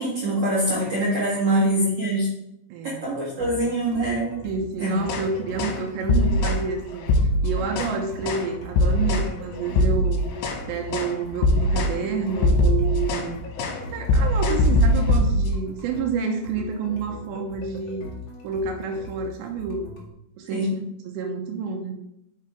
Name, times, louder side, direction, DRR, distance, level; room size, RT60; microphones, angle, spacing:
voice 1, 0.0-2.3 2.8-4.4 4.8-5.0 20.5-20.8, right 1 dB, 60° right, -7 dB, 1.5 m, -24 dB
voice 2, 2.7-3.1 3.4-3.6 4.4-7.1 7.4-10.2 10.7-13.4 13.9-18.1 18.4-20.0 20.4-20.8 21.0-21.9, right 5 dB, 75° right, 4 dB, 2.7 m, -29 dB
sound 1, 3.4-20.1, left 2 dB, 90° left, 1.0 m, -40 dB
sound 2, 5.0-5.3 5.6-5.8 6.1-6.6 7.0-8.0 8.3-8.5 8.8-9.3 9.7-10.6 10.9-11.2 11.4-12.0 12.3-13.3 13.6-13.8 14.1-15.6, left 1 dB, 70° left, 2.9 m, -21 dB
9.4 x 5.9 x 4.6 m, 0.82 s
omnidirectional pair, 5.8 m